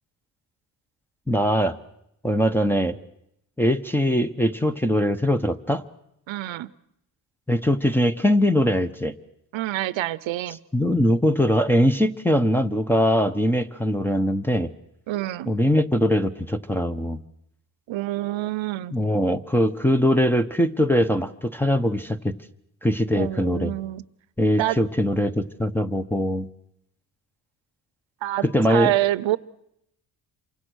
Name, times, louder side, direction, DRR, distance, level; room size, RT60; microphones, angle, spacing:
voice 1, 1.3-1.7 2.2-3.0 3.6-5.8 7.5-9.1 10.7-14.7 15.5-17.2 18.9-22.3 22.8-23.7 24.4-26.5 28.4-28.9, equal, 5° left, 11 dB, 0.9 m, -21 dB
voice 2, 6.3-6.7 9.5-10.6 15.1-15.5 17.9-18.9 23.1-24.0 24.6-24.8 28.2-29.4, right 15 dB, 75° right, 19 dB, 0.9 m, -26 dB
28.0 x 24.5 x 6.4 m, 0.77 s
cardioid pair, 140°, 46 cm